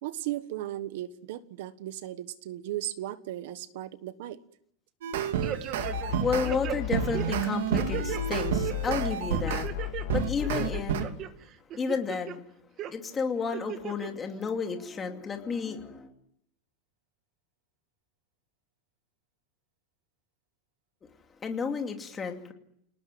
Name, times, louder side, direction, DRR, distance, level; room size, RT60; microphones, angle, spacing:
voice 1, 0.0-4.4 6.7-7.0, right 14 dB, 60° right, 14 dB, 1.2 m, -36 dB
sound 1, 5.0-6.5 6.9-9.7 10.1-11.0, right 9 dB, 90° right, 2.9 m, -30 dB
sound 2, 5.4-6.2 6.4-8.2 8.6-9.0 9.5-10.1 10.4-11.3 11.7-12.4 12.8-12.9 13.5-14.1 14.5-14.6, right 11 dB, 30° right, 1.4 m, -36 dB
sound 3, 5.8-7.5 7.7-10.8, left 14 dB, 60° left, 3.0 m, -34 dB
voice 2, 6.2-9.7 10.1-11.1 11.8-12.4 12.9-16.1 21.4-22.5, left 5 dB, 15° left, 4 dB, 2.5 m, -32 dB
28.5 x 19.0 x 9.2 m, 0.75 s
supercardioid pair, 175°, 0 cm